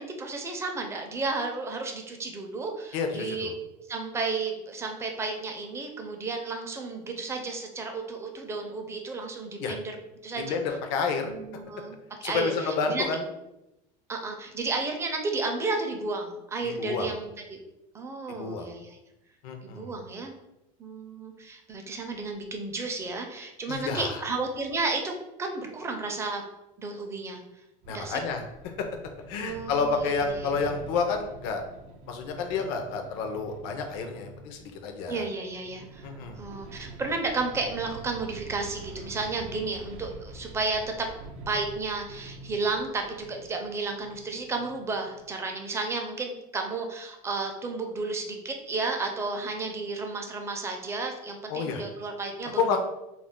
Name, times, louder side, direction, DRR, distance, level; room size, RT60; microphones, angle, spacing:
voice 1, 0.0-3.5 3.9-10.0 10.2-10.6 11.2-13.1 14.1-17.6 17.9-19.0 19.6-20.3 20.8-25.1 25.4-26.4 26.8-27.4 27.9-28.2 29.4-30.5 35.1-36.0 36.4-41.1 41.5-52.8, right 3 dB, 15° right, 3 dB, 0.4 m, -32 dB
voice 2, 2.9-3.5 9.6-9.8 10.4-11.3 12.2-13.3 16.6-17.1 18.3-18.7 19.4-20.0 23.7-24.2 27.9-28.9 29.3-31.6 32.1-35.3 36.0-36.5 51.5-51.8 52.6-52.8, left 5 dB, 70° left, 5 dB, 0.5 m, -30 dB
sound 1, 27.8-45.3, right 3 dB, 70° right, 0.5 m, -46 dB
2.4 x 2.0 x 3.6 m, 0.91 s
cardioid pair, 140°, 18 cm